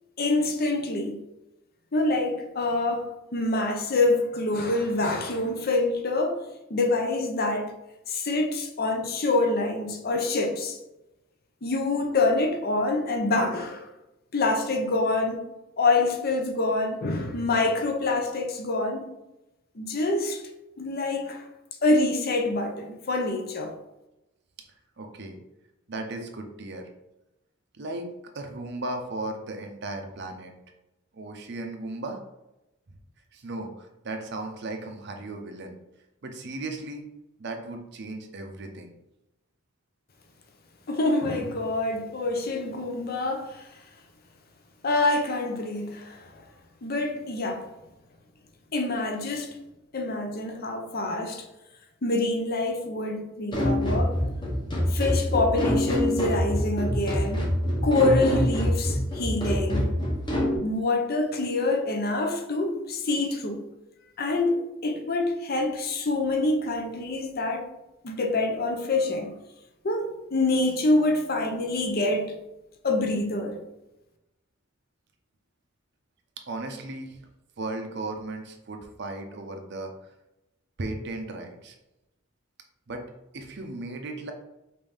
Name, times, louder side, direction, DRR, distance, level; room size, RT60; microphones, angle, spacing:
voice 1, 0.2-1.2 1.9-6.4 6.7-7.7 8.1-10.8 11.6-13.9 14.3-15.4 15.8-19.1 19.8-20.4 20.8-21.5 21.8-23.7 40.9-43.7 44.8-46.4 46.8-47.7 48.7-49.6 49.9-51.5 52.0-54.2 54.9-57.5 57.8-59.9 60.6-63.6 64.2-67.7 68.0-69.3 69.8-72.3 72.8-73.6, left 2 dB, 45° left, 0.6 m, -26 dB
voice 2, 25.0-25.4 25.9-26.9 27.7-30.5 31.1-32.2 33.3-35.8 36.2-37.1 37.4-38.9 76.5-77.2 77.6-79.9 80.8-81.8 82.9-83.0 83.3-84.3, right 2 dB, 55° right, 0.6 m, -36 dB
sound 1, 53.5-60.6, left 1 dB, 20° left, 0.9 m, -25 dB
5.3 x 2.7 x 3.4 m
head